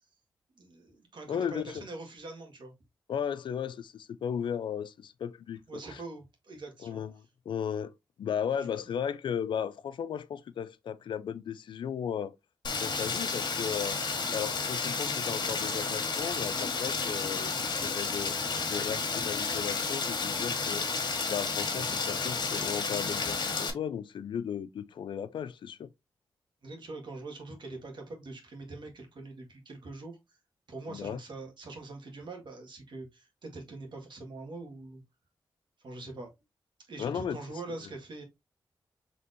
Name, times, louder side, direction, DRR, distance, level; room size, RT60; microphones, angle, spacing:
voice 1, 0.5-2.7 5.7-7.0 8.6-8.9 26.6-30.2 30.7-35.0 35.8-36.3 36.9-38.2, right 2 dB, 70° right, 1.6 m, -43 dB
voice 2, 1.3-1.8 3.1-5.6 5.9-6.0 6.8-7.1 7.5-7.9 8.2-12.4 12.8-18.3 18.7-20.9 21.3-25.9 30.9-31.2 37.0-37.4, left 8 dB, 80° left, 0.4 m, -35 dB
Rain, 12.6-23.7, left 4 dB, 60° left, 1.3 m, -31 dB
4.3 x 3.4 x 2.5 m
cardioid pair, 55°, 8 cm